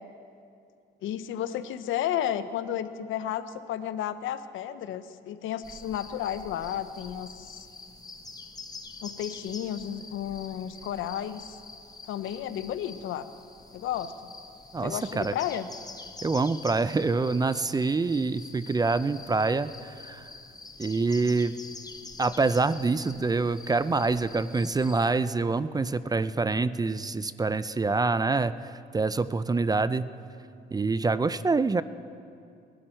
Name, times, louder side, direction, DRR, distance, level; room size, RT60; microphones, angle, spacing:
voice 1, 1.0-7.7 9.0-11.6 12.0-13.3 13.7-14.3 14.8-15.7, left 10 dB, 80° left, 12 dB, 0.7 m, -32 dB
sound 1, 5.6-25.1, left 3 dB, 20° left, 0.9 m, -46 dB
voice 2, 14.7-15.3 16.2-20.3 20.8-21.6 22.2-30.1 30.7-31.8, right 3 dB, 20° right, 15 dB, 0.4 m, -26 dB
20.0 x 12.0 x 4.4 m, 2.5 s
cardioid pair, 90°, 20 cm